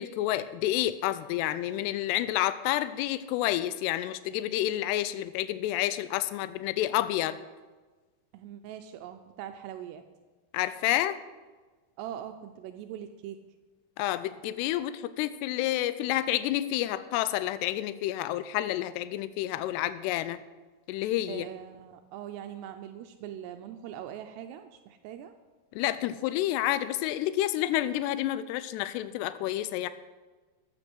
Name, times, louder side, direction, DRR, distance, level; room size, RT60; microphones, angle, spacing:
voice 1, 0.0-7.4 10.5-11.2 14.0-20.4 20.9-21.5 25.8-29.9, left 14 dB, 85° left, 14 dB, 2.7 m, -29 dB
voice 2, 8.3-10.0 12.0-13.4 21.3-25.3, right 10 dB, 85° right, 7 dB, 2.7 m, -42 dB
14.0 x 8.9 x 6.2 m, 1.3 s
omnidirectional pair, 4.8 m